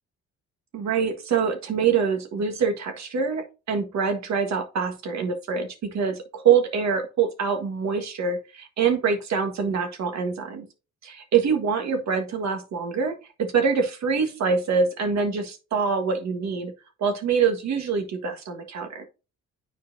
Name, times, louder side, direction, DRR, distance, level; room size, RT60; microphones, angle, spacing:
voice 1, 0.7-10.6 11.0-16.7 17.0-19.0, right 6 dB, 65° right, 5 dB, 1.6 m, -25 dB
9.8 x 4.4 x 2.6 m, 0.30 s
cardioid pair, 90°, 30 cm